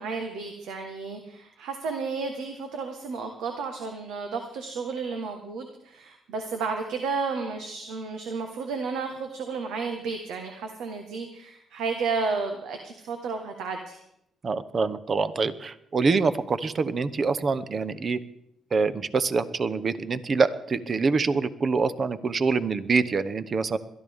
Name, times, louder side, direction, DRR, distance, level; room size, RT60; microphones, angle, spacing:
voice 1, 0.0-14.0, right 4 dB, 85° right, 4 dB, 1.5 m, -32 dB
voice 2, 14.4-18.2 18.7-23.8, right 4 dB, 40° right, 13 dB, 0.9 m, -25 dB
22.0 x 13.0 x 3.6 m, 0.78 s
cardioid pair, 90°, 0 cm